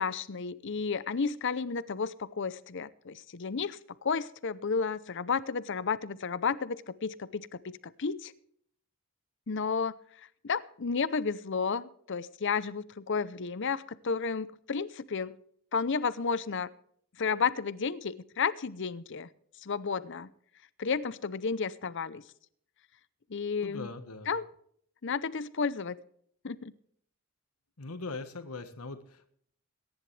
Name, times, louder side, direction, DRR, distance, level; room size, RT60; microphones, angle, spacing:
voice 1, 0.0-8.3 9.5-10.0 10.4-15.4 15.7-16.7 17.2-19.3 19.6-20.3 20.8-22.2 23.3-23.9 24.3-24.5 25.0-26.0 26.4-26.7, left 5 dB, 55° left, 17 dB, 0.7 m, -32 dB
voice 2, 23.6-24.3 27.8-29.3, left 3 dB, 90° left, 9 dB, 1.4 m, -41 dB
22.5 x 10.5 x 3.3 m, 0.64 s
head